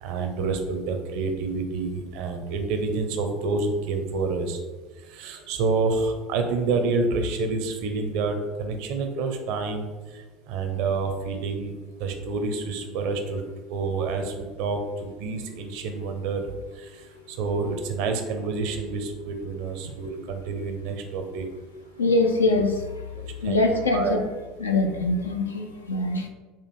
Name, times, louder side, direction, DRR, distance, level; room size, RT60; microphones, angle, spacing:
voice 1, 0.0-4.6 5.1-9.9 10.5-11.7 12.0-13.4 13.7-16.4 16.8-16.9 17.3-21.5 23.2-23.6 23.9-24.2, right 4 dB, 60° right, 5 dB, 0.6 m, -28 dB
voice 2, 22.0-24.3 24.6-26.3, left 2 dB, 85° left, 4 dB, 0.4 m, -24 dB
4.2 x 2.5 x 3.3 m, 1.3 s
figure-of-eight pair, 70°, 0 cm